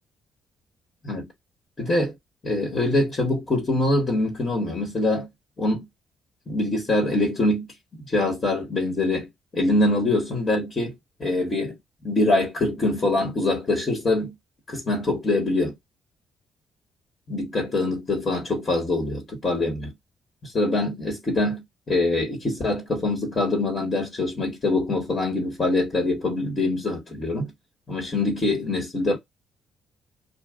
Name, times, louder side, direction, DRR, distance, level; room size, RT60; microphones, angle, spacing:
voice 1, 1.8-2.1 2.4-5.3 5.6-5.8 6.5-7.7 8.0-9.3 9.5-10.9 11.2-11.7 12.0-14.3 14.7-15.7 17.3-19.9 20.4-27.5 27.9-29.2, left 2 dB, 35° left, 1.3 m, -24 dB
2.3 x 2.3 x 3.5 m
cardioid pair, 90°, 0 cm